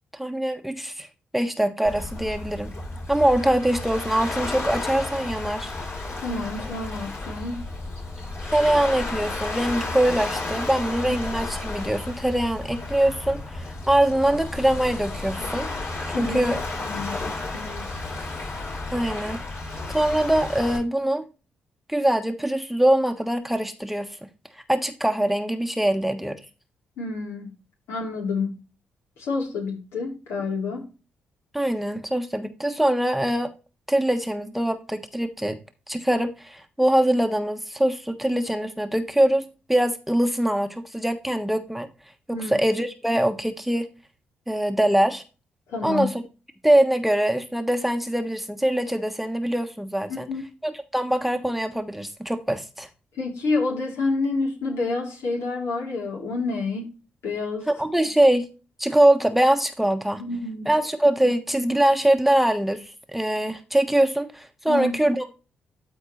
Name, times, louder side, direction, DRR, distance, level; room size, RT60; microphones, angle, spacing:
voice 1, 0.1-1.1 1.3-2.7 3.1-5.7 8.5-15.7 16.2-16.6 18.9-19.4 19.9-21.3 21.9-24.2 24.5-26.4 31.5-33.5 33.9-35.6 35.9-41.9 42.3-43.9 44.5-45.2 45.8-46.2 46.6-50.3 50.6-52.9 57.7-58.5 58.8-60.2 60.6-65.3, right 1 dB, 5° right, 1.2 m, -23 dB
Waves surf, 1.8-20.8, left 2 dB, 55° left, 5.1 m, -32 dB
voice 2, 6.2-7.6 16.1-16.6 16.9-18.0 27.0-27.5 27.9-28.5 29.2-30.9 42.3-42.5 45.7-46.1 50.1-50.4 53.2-56.9 57.2-57.7 60.2-60.7 64.7-64.9, left 3 dB, 70° left, 3.4 m, -28 dB
13.0 x 4.6 x 3.1 m
hypercardioid pair, 45°, 5 cm